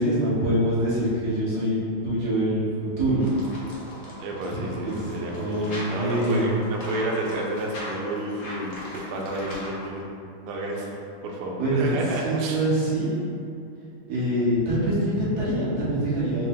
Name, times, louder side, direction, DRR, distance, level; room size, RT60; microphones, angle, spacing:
voice 1, 0.0-1.8 2.0-3.3 4.5-5.0 5.3-6.5 11.5-12.0 12.2-13.1 14.1-16.5, right 1 dB, 50° right, -10 dB, 1.5 m, -24 dB
sound 1, 3.2-9.9, left 1 dB, 85° left, 0.6 m, -39 dB
voice 2, 4.2-10.0 10.4-10.9 11.2-12.6, right 1 dB, 90° right, -1 dB, 0.9 m, -31 dB
5.1 x 2.1 x 3.7 m, 2.5 s
omnidirectional pair, 2.4 m